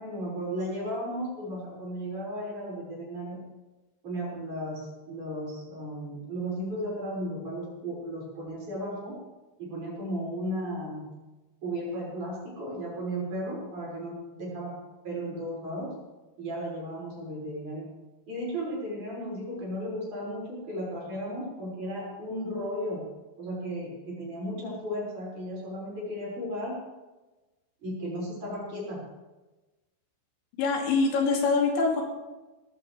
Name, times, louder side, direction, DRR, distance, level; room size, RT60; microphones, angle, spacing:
voice 1, 0.0-3.4 4.0-9.2 9.6-11.1 11.6-14.8 15.0-15.9 16.4-17.9 18.3-23.1 23.4-26.8 27.8-29.0, equal, 40° right, -5 dB, 7.0 m, -35 dB
voice 2, 30.6-32.0, left 4 dB, 80° left, 0 dB, 4.7 m, -24 dB
19.0 x 16.0 x 3.4 m, 1.1 s
omnidirectional pair, 5.3 m